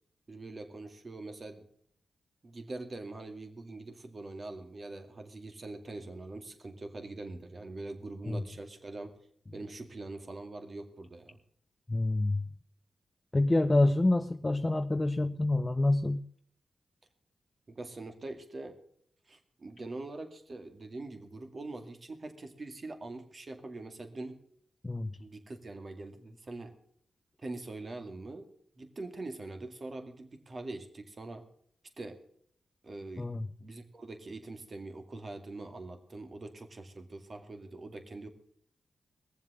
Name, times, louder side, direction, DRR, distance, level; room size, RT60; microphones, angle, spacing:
voice 1, 0.3-1.6 2.4-9.1 9.5-11.4 17.7-18.8 19.3-24.4 25.2-26.7 27.4-28.5 28.8-31.4 32.0-32.2 32.8-33.3 33.6-38.3, right 2 dB, 45° right, 6 dB, 2.1 m, -43 dB
voice 2, 11.9-12.5 13.3-16.2 24.8-25.2 33.2-33.5, left 2 dB, 25° left, 7 dB, 0.6 m, -27 dB
19.5 x 7.4 x 6.6 m, 0.64 s
cardioid pair, 55°, 0 cm